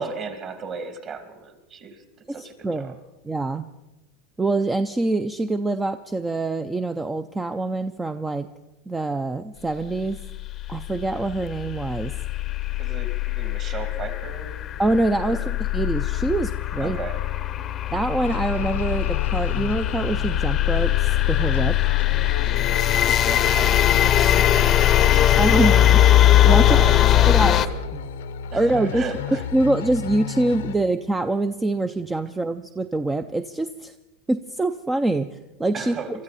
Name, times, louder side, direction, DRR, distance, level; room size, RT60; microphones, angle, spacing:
voice 1, 0.0-2.0 2.3-2.9 12.8-14.8 15.2-15.5 16.8-17.2 22.9-25.9 26.6-27.7 28.5-29.4 35.7-36.1, right 4 dB, 35° right, 7 dB, 2.4 m, -36 dB
voice 2, 2.3-2.9 3.3-3.6 4.4-8.5 8.9-10.2 10.7-12.2 14.8-17.0 17.9-21.8 25.4-26.0 26.4-26.8 27.3-27.6 27.9-28.0 28.5-29.0 29.5-33.9 34.3-35.9, right 2 dB, 10° right, 10 dB, 0.5 m, -25 dB
sound 1, 10.0-27.7, left 12 dB, 30° left, 0.7 m, -20 dB
sound 2, 18.2-30.8, left 7 dB, 90° left, 0.8 m, -33 dB
23.5 x 13.5 x 4.1 m, 1.0 s
supercardioid pair, 135°, 0 cm